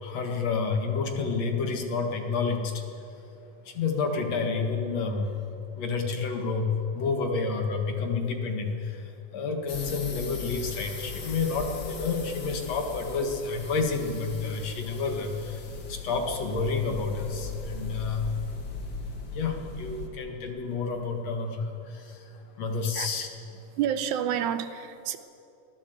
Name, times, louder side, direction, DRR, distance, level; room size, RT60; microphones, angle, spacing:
voice 1, 0.0-2.8 3.7-5.3 5.8-18.3 19.3-23.3, left 4 dB, 60° left, 3 dB, 2.8 m, -29 dB
sound 1, 9.7-20.1, left 3 dB, 40° left, 2.0 m, -39 dB
voice 2, 23.8-25.2, right 9 dB, 80° right, 11 dB, 2.2 m, -29 dB
23.0 x 15.5 x 7.9 m, 2.8 s
omnidirectional pair, 3.5 m